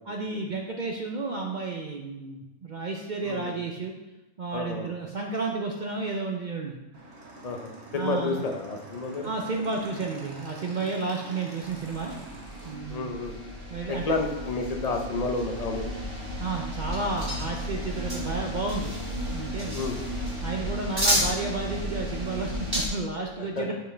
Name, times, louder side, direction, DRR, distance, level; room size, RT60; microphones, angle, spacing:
voice 1, 0.0-3.9 4.4-6.8 7.9-8.4 9.2-12.1 12.6-13.1 13.7-14.0 16.4-18.9 19.3-19.8 20.4-23.7, right 3 dB, 70° right, 1 dB, 0.4 m, -32 dB
voice 2, 3.2-3.6 4.5-5.0 7.4-9.3 12.9-13.4 13.9-15.9 19.7-20.0 23.4-23.7, left 3 dB, 35° left, 3 dB, 0.6 m, -30 dB
Motorcycle / Engine, 6.9-12.8, right 2 dB, 50° right, 1.4 m, -45 dB
sound 1, 11.6-22.9, equal, 15° right, 2.2 m, -32 dB
7.2 x 5.4 x 3.3 m, 1.0 s
omnidirectional pair, 1.6 m